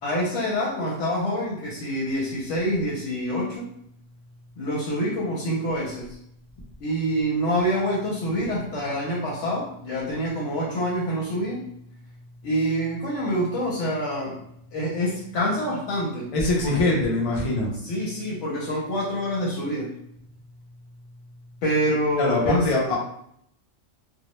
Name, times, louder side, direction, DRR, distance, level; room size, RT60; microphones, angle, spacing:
voice 1, 0.0-3.7 4.6-6.2 6.8-11.6 12.4-14.4 14.7-16.3 16.6-17.0 17.8-19.9 21.6-22.7, equal, 80° left, -5 dB, 0.9 m, -26 dB
voice 2, 16.3-17.7 22.2-22.9, left 2 dB, 65° left, -2 dB, 0.3 m, -23 dB
2.2 x 2.0 x 2.9 m, 0.71 s
omnidirectional pair, 1.2 m